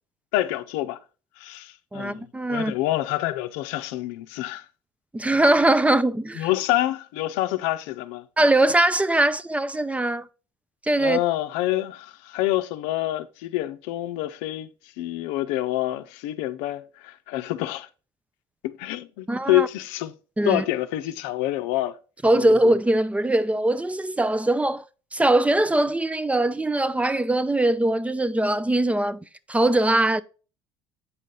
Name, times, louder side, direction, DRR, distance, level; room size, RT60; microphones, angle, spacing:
voice 1, 0.3-1.0 1.4-4.7 6.4-8.2 11.0-14.7 15.0-17.9 18.6-20.1 20.4-22.0 22.3-22.5, left 16 dB, 75° left, 0.6 m, -27 dB
voice 2, 1.9-2.7 5.1-6.5 8.4-10.3 10.8-11.2 19.3-19.7 20.4-20.6 22.2-24.8 25.1-30.2, right 1 dB, 10° right, 0.5 m, -21 dB
8.3 x 5.3 x 3.8 m
hypercardioid pair, 70°, 12 cm